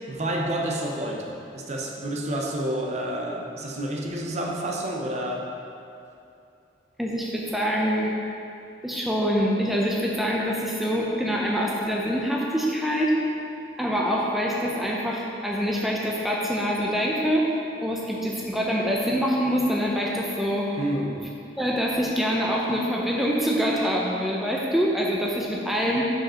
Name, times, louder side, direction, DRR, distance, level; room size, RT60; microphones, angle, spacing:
voice 1, 0.1-5.5 20.8-21.2, right 1 dB, 40° right, 0 dB, 0.7 m, -29 dB
voice 2, 7.0-8.1 8.8-13.1 13.8-17.5 17.8-20.7 21.6-26.1, equal, ahead, -3 dB, 0.5 m, -25 dB
5.1 x 5.1 x 5.6 m, 2.7 s
head